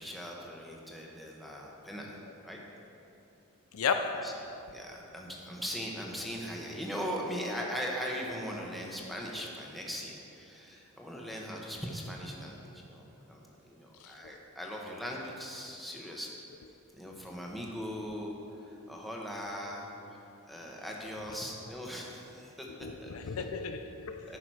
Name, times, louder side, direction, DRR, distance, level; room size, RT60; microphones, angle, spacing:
voice 1, 0.0-2.2 2.4-2.6 4.2-4.3 4.7-13.4 13.6-16.3 17.0-18.4 18.6-20.2 20.5-23.5 24.3-24.4, equal, ahead, 1.0 m, -40 dB
voice 2, 3.7-4.4 14.0-14.1 22.8-24.4, left 5 dB, 70° left, 0.4 m, -34 dB
10.5 x 6.0 x 4.6 m
head